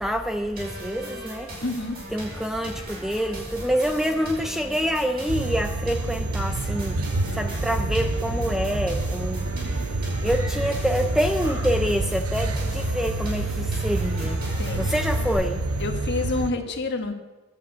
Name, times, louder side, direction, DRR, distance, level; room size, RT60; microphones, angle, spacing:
voice 1, 0.0-1.5 2.1-7.0 7.4-9.4 10.2-14.4 14.8-15.6, equal, ahead, 0.4 m, -26 dB
sound 1, 0.6-15.3, equal, 45° right, 5.3 m, -39 dB
voice 2, 1.6-2.0 14.6-14.9 15.8-17.1, left 3 dB, 50° left, 1.5 m, -28 dB
sound 2, 5.3-16.5, right 2 dB, 75° right, 0.8 m, -27 dB
Screaming, 10.2-11.1 11.3-12.1 12.4-13.4, right 1 dB, 15° right, 3.3 m, -44 dB
11.0 x 7.4 x 7.9 m
head